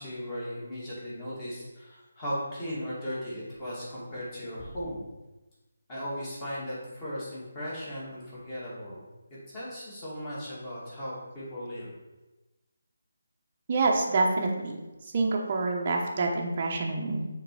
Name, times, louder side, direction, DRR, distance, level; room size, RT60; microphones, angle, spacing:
voice 1, 0.0-5.1 5.9-9.1 9.5-11.9, equal, 20° left, -8 dB, 2.2 m, -37 dB
voice 2, 13.7-14.8 15.1-17.3, right 3 dB, 30° right, 0 dB, 0.8 m, -27 dB
6.5 x 3.9 x 4.7 m, 1.1 s
hypercardioid pair, 170°, 0 cm